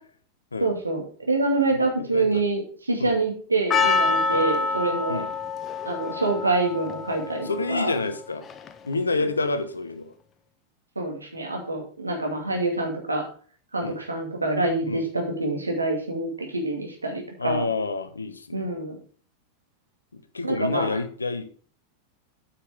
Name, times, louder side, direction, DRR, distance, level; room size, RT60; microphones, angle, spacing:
voice 1, 0.6-5.2 5.8-7.9 9.2-9.3 11.0-13.3 13.7-17.6 18.5-19.0 20.4-20.9, right 2 dB, 80° right, 2 dB, 2.2 m, -26 dB
voice 2, 1.7-2.4 3.0-3.2 4.3-4.4 5.1-5.3 7.4-8.5 8.8-10.1 12.5-12.7 13.8-14.0 14.9-15.0 17.4-18.7 20.1-21.4, left 3 dB, 75° left, 10 dB, 1.0 m, -29 dB
Percussion, 3.7-8.9, left 4 dB, 25° left, 0.8 m, -27 dB
8.6 x 5.8 x 4.9 m, 0.43 s
figure-of-eight pair, 90°, 0 cm